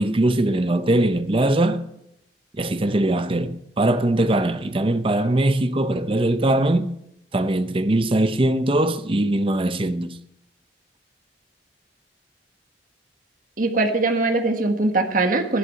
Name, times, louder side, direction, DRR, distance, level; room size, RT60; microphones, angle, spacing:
voice 1, 0.0-1.8 2.5-6.9 7.3-10.2, right 1 dB, 30° right, 0.7 m, -21 dB
voice 2, 13.6-15.6, right 2 dB, 50° right, 1.5 m, -21 dB
13.0 x 11.5 x 5.6 m
head